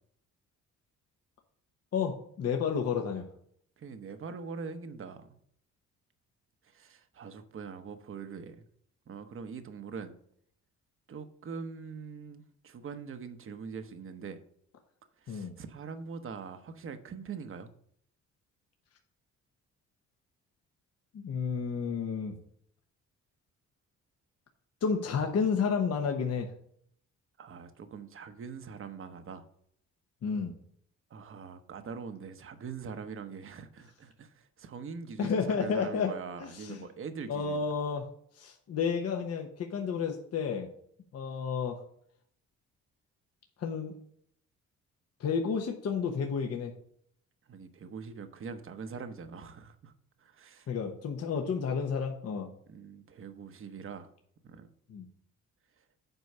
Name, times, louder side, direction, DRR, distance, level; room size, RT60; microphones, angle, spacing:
voice 1, 1.9-3.2 15.3-15.5 21.1-22.4 24.8-26.5 30.2-30.5 35.2-36.1 36.4-36.9 37.3-38.0 38.3-40.7 41.1-41.8 43.6-43.9 45.2-46.7 50.7-52.5 54.9-55.1, left 6 dB, 55° left, 3 dB, 1.1 m, -31 dB
voice 2, 3.8-5.4 6.6-8.6 9.1-10.2 11.1-14.4 15.2-17.7 27.4-29.4 31.1-37.6 47.5-49.9 50.2-50.7 52.7-54.1 54.4-54.7, right 5 dB, 45° right, 9 dB, 0.9 m, -43 dB
8.1 x 4.6 x 5.5 m, 0.66 s
cardioid pair, 90°, 30 cm